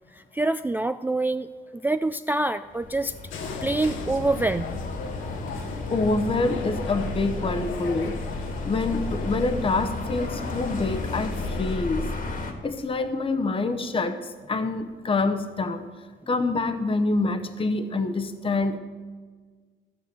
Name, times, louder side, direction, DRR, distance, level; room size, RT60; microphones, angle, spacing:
voice 1, 0.1-3.1 3.6-4.7, right 2 dB, 10° right, 10 dB, 0.3 m, -26 dB
sound 1, 2.7-12.5, left 2 dB, 45° left, 1.7 m, -33 dB
sound 2, 3.3-11.8, left 4 dB, 85° left, 1.4 m, -36 dB
voice 2, 5.9-8.2 8.6-12.1 12.6-15.9 16.3-18.8, left 3 dB, 25° left, 9 dB, 0.8 m, -26 dB
14.5 x 5.9 x 6.8 m, 1.5 s
cardioid pair, 90°, 20 cm